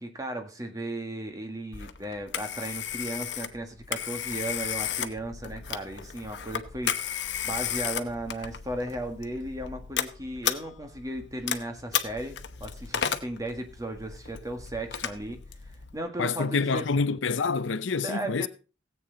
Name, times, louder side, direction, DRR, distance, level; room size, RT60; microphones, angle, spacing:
voice 1, 0.0-15.4 15.9-16.9 18.0-18.5, right 1 dB, 20° right, 1.8 m, -36 dB
Telephone, 1.7-16.0, left 9 dB, 65° left, 1.0 m, -34 dB
voice 2, 16.2-18.5, left 4 dB, 80° left, 0.6 m, -27 dB
17.0 x 8.4 x 4.0 m
head